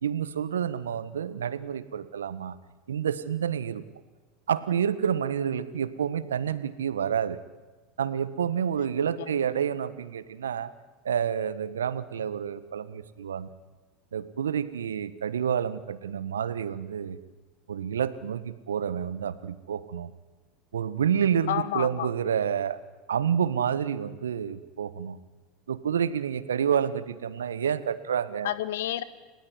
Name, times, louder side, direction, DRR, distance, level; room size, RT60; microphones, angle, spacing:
voice 1, 0.0-2.5 2.9-3.8 4.5-7.4 8.0-10.7 11.0-13.5 14.1-17.2 17.7-20.1 20.7-22.8 23.1-25.2 25.7-28.5, right 8 dB, 80° right, 15 dB, 1.5 m, -29 dB
voice 2, 21.5-22.1 28.4-29.0, left 12 dB, 70° left, 15 dB, 1.6 m, -30 dB
30.0 x 19.0 x 9.7 m, 1.3 s
hypercardioid pair, 80°, 0 cm